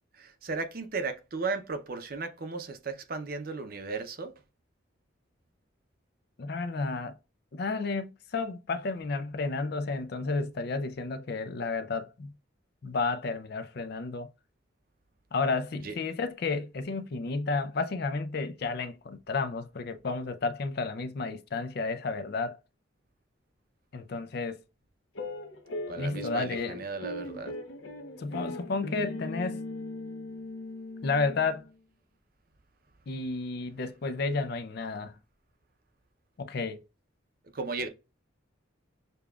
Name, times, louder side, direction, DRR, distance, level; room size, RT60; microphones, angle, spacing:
voice 1, 0.1-4.3 15.8-15.9 25.9-27.5 37.5-37.9, right 4 dB, 45° right, 0.6 m, -35 dB
voice 2, 6.4-7.2 7.5-12.3 12.8-14.3 15.3-22.6 23.9-24.6 26.0-26.8 28.2-29.6 31.0-31.6 33.1-35.2 36.4-36.8, left 4 dB, 55° left, 0.4 m, -32 dB
sound 1, 25.1-31.7, left 2 dB, 70° left, 0.8 m, -39 dB
6.7 x 2.3 x 2.3 m
head